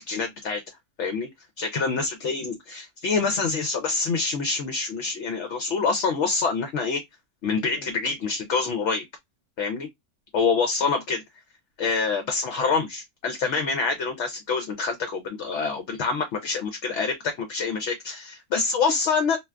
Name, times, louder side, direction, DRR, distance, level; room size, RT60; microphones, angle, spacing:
voice 1, 0.1-0.6 1.0-1.3 1.6-7.0 7.4-9.0 9.6-9.9 10.3-11.2 11.8-19.4, left 4 dB, 65° left, 0.8 m, -26 dB
2.5 x 2.3 x 3.3 m
omnidirectional pair, 1.6 m